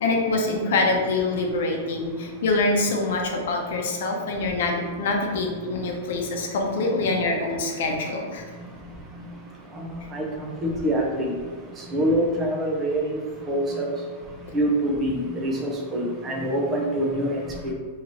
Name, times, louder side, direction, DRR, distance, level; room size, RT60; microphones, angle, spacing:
voice 1, 0.0-8.5, left 2 dB, 65° left, 1 dB, 0.7 m, -25 dB
voice 2, 10.6-11.3 11.9-13.1 13.5-13.9 14.5-17.7, right 1 dB, 20° right, -1 dB, 0.5 m, -25 dB
3.0 x 2.8 x 4.0 m, 1.5 s
supercardioid pair, 165°, 0 cm